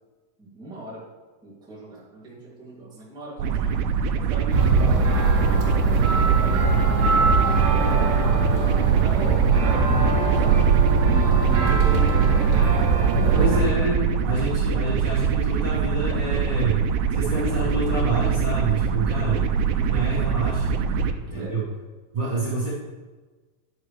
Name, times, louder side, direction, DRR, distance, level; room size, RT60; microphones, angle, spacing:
voice 1, 0.4-1.1 1.4-3.8 4.1-7.4 7.7-13.6 19.1-19.4 19.8-19.9 20.9-21.6, right 2 dB, 5° right, -7 dB, 0.7 m, -38 dB
sound 1, 3.4-21.1, right 7 dB, 80° right, 2.5 m, -24 dB
sound 2, 4.5-13.6, right 4 dB, 65° right, 3.2 m, -21 dB
voice 2, 13.3-19.5 19.8-20.8 21.2-21.7 22.1-22.7, right 2 dB, 40° right, -8 dB, 2.1 m, -27 dB
10.5 x 6.4 x 3.3 m, 1.3 s
omnidirectional pair, 4.8 m